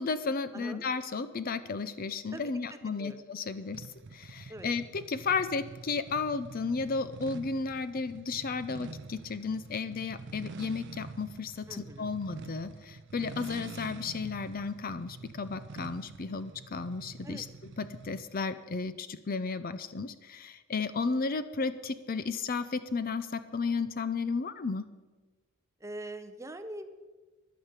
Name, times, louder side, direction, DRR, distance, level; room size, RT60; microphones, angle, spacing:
voice 1, 0.0-3.9 4.1-24.9, left 4 dB, 40° left, 13 dB, 0.5 m, -33 dB
voice 2, 0.5-0.9 2.3-2.5 2.9-3.2 4.5-4.7 11.7-12.1 17.2-17.4 25.8-26.9, right 1 dB, 15° right, 9 dB, 0.7 m, -43 dB
sound 1, 3.7-18.4, right 3 dB, 55° right, 0.5 m, -46 dB
10.5 x 9.0 x 8.1 m, 1.2 s
head